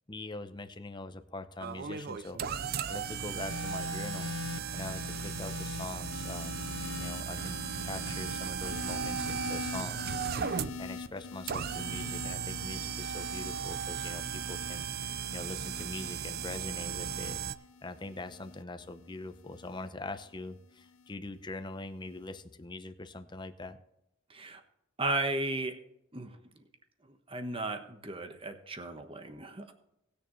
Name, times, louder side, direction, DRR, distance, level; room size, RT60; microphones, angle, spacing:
voice 1, 0.1-4.3 4.7-6.6 7.0-17.4 17.8-23.8, left 2 dB, 20° left, 8 dB, 0.8 m, -43 dB
sound 1, 1.6-17.5, right 7 dB, 50° right, 0.4 m, -36 dB
sound 2, 3.4-19.9 20.8-21.1, left 4 dB, 80° left, 0.6 m, -43 dB
voice 2, 24.3-24.6 25.0-25.7 26.1-26.4 27.3-29.7, right 2 dB, 25° right, 6 dB, 1.2 m, -35 dB
19.0 x 6.8 x 3.2 m, 0.84 s
head